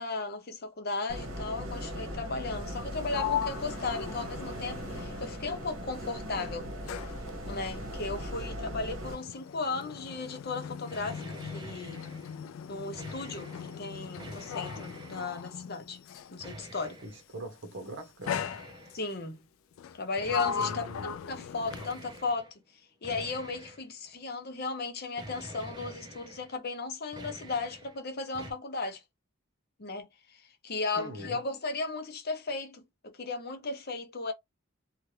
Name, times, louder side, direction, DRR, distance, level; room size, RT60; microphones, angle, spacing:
voice 1, 0.0-6.7 7.5-12.0 12.7-16.0 16.3-17.0 18.9-19.4 19.9-20.8 21.3-22.5 23.0-29.0 29.8-30.4 30.6-34.3, left 3 dB, 50° left, 0.7 m, -35 dB
sound 1, 1.1-9.1, equal, 85° right, 0.9 m, -39 dB
Sliding door, 2.7-6.0 6.3-16.4 17.3-17.6 18.3-19.2 19.8-22.3, left 8 dB, 75° left, 0.3 m, -39 dB
sound 2, 10.9-12.4 12.7-13.8 14.2-15.4 16.4-17.2 18.2-19.1 20.2-21.0 21.7-22.5 23.0-24.2 25.2-26.6 26.9-28.0 28.3-28.5, right 1 dB, 20° right, 0.6 m, -46 dB
voice 2, 17.0-18.3 20.6-21.1 31.0-31.4, right 1 dB, 60° right, 1.0 m, -42 dB
2.8 x 2.4 x 3.2 m
head